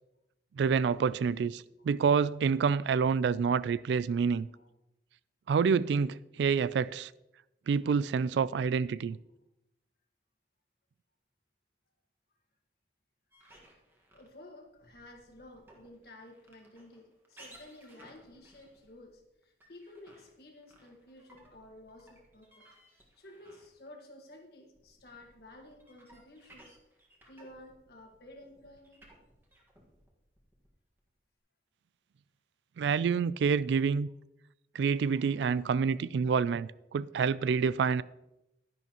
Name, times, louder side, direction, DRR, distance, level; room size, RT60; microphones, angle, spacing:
voice 1, 0.6-4.5 5.5-7.1 7.7-9.2 32.8-34.1 34.7-38.0, right 6 dB, 75° right, 0.3 m, -28 dB
sound 1, 13.3-24.0 24.3-31.1, right 1 dB, 10° right, 1.5 m, -59 dB
voice 2, 14.1-22.7 22.9-26.8 27.3-29.1 35.1-35.3 35.6-35.7 36.2-36.3 36.5-36.6, left 1 dB, 60° left, 1.6 m, -53 dB
11.0 x 10.5 x 3.0 m
head